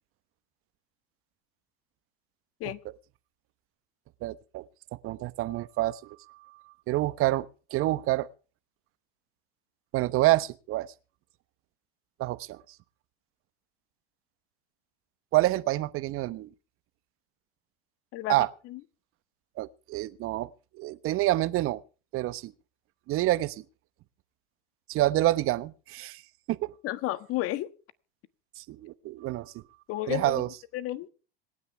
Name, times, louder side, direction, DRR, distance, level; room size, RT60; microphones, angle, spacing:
voice 1, 4.2-4.6 4.9-7.5 7.7-8.3 9.9-10.9 12.2-12.6 15.3-16.5 18.3-18.5 19.6-20.5 20.7-21.8 22.1-22.5 23.1-23.6 24.9-26.2 26.5-26.7 28.6-29.5 30.1-30.5, right 17 dB, 45° right, 1.1 m, -27 dB
voice 2, 26.8-27.7 29.9-30.4 30.7-31.1, left 15 dB, 50° left, 1.5 m, -32 dB
26.5 x 9.7 x 3.5 m
hypercardioid pair, 90°, 30 cm